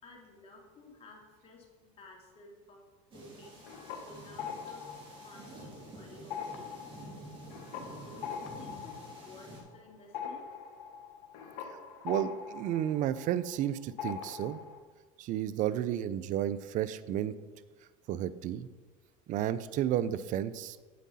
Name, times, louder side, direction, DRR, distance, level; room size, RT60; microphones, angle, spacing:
voice 1, 0.0-2.8 3.1-3.7 4.0-4.9 5.2-7.0 7.9-10.5, left 2 dB, 35° left, 0 dB, 2.5 m, -54 dB
sound 1, 3.1-9.6, right 2 dB, 30° right, 3.4 m, -49 dB
sound 2, 3.4-5.9 6.2-13.7 14.0-14.8, left 7 dB, 75° left, 1.5 m, -43 dB
voice 2, 12.0-14.6 15.2-17.3 18.1-18.7 19.3-20.9, right 11 dB, 50° right, 15 dB, 0.5 m, -32 dB
9.3 x 8.3 x 4.2 m, 1.3 s
supercardioid pair, 105°, 17 cm